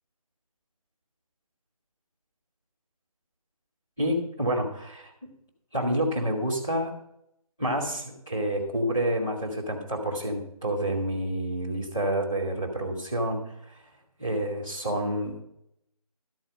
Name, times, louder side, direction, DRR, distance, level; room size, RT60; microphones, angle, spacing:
voice 1, 4.0-5.1 5.7-6.9 7.6-13.8 14.2-15.4, right 1 dB, 5° left, -9 dB, 0.6 m, -28 dB
12.5 x 4.7 x 6.3 m, 0.78 s
figure-of-eight pair, 170°, 19 cm